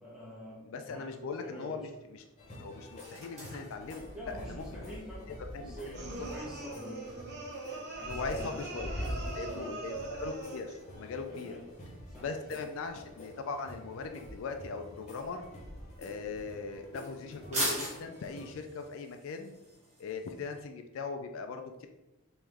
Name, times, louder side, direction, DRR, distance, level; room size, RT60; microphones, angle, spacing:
voice 1, 0.0-1.2 1.4-1.9 4.1-7.3 7.6-9.8 11.4-11.6 12.1-12.3, equal, 5° right, -6 dB, 1.1 m, -46 dB
voice 2, 0.7-2.2 2.6-4.1 4.5-5.0 5.5-5.7 6.2-6.3 8.1-8.9 9.4-11.6 12.2-15.5 16.0-19.5 20.0-21.9, left 4 dB, 65° left, 5 dB, 0.3 m, -40 dB
sound 1, 1.0-20.6, right 1 dB, 30° right, 1.2 m, -45 dB
sound 2, 2.4-18.5, equal, 30° left, 0.8 m, -46 dB
sound 3, 5.9-10.8, right 3 dB, 50° right, 1.0 m, -41 dB
3.5 x 3.0 x 3.3 m, 0.98 s
head